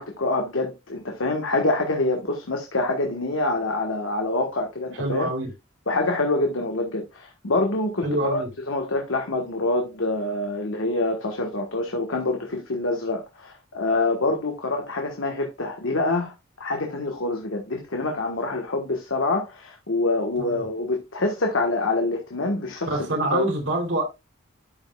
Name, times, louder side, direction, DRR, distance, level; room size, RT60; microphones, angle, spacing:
voice 1, 0.0-5.3 5.9-23.0 23.3-23.4, left 2 dB, 75° left, 1.4 m, -26 dB
voice 2, 5.0-5.5 8.0-8.5 20.4-20.6 22.9-24.0, right 1 dB, 65° right, 3.2 m, -25 dB
12.5 x 5.3 x 2.3 m
head